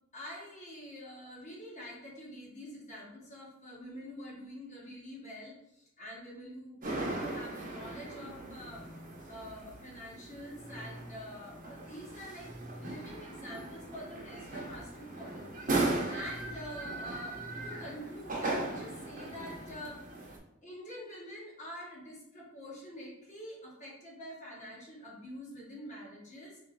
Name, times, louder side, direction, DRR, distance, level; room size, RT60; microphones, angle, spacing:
voice 1, 0.1-8.8 9.3-12.5 12.8-20.0 20.6-26.6, equal, 35° left, -4 dB, 1.3 m, -46 dB
sound 1, 6.8-20.4, right 2 dB, 40° right, 0.8 m, -38 dB
3.7 x 3.2 x 3.9 m, 0.85 s
head